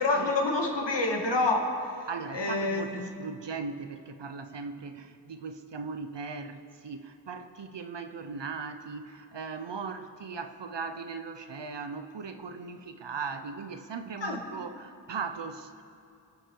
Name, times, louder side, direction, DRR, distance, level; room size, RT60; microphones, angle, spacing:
voice 1, 0.0-2.1 2.3-3.1 14.2-14.4, left 2 dB, 90° left, 1 dB, 2.0 m, -28 dB
voice 2, 2.1-15.8, right 5 dB, 85° right, 9 dB, 1.0 m, -38 dB
26.0 x 9.1 x 4.8 m, 2.6 s
cardioid pair, 40°, 42 cm